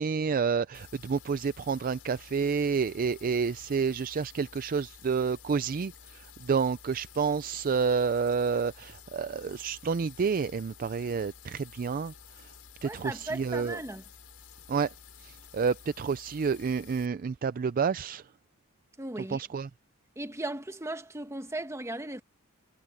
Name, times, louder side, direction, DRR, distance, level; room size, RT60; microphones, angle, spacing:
voice 1, 0.0-5.9 6.5-12.1 12.8-13.8 14.7-14.9 15.2-18.2 19.3-19.7, right 5 dB, 40° right, 0.4 m, -29 dB
sound 1, 0.7-17.1, left 7 dB, 90° left, 5.3 m, -52 dB
voice 2, 12.8-14.1 19.0-19.4 20.2-22.2, right 2 dB, 15° right, 1.3 m, -37 dB
head